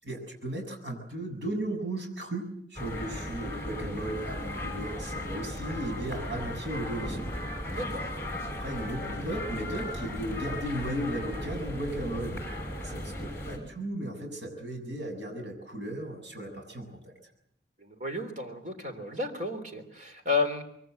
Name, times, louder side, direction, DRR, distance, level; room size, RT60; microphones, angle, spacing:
voice 1, 0.0-7.3 8.6-12.4 12.8-16.9, right 1 dB, 75° right, 3 dB, 7.5 m, -35 dB
sound 1, 2.8-13.6, left 1 dB, 15° left, 5.7 m, -36 dB
voice 2, 7.7-8.0 17.8-20.6, left 3 dB, 40° right, 6 dB, 3.5 m, -32 dB
24.5 x 23.0 x 7.9 m, 0.71 s
head